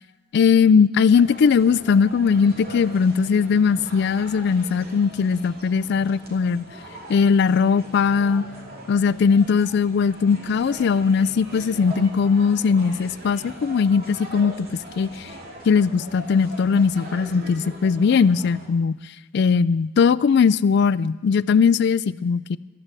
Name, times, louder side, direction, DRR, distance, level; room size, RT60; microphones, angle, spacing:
voice 1, 0.3-6.7 7.1-8.4 8.9-14.7 15.0-15.3 15.7-19.0 19.3-22.6, left 6 dB, 60° left, 19 dB, 0.3 m, -19 dB
sound 1, 1.1-18.7, right 1 dB, 50° right, 2.6 m, -41 dB
14.0 x 9.6 x 7.5 m, 1.2 s
head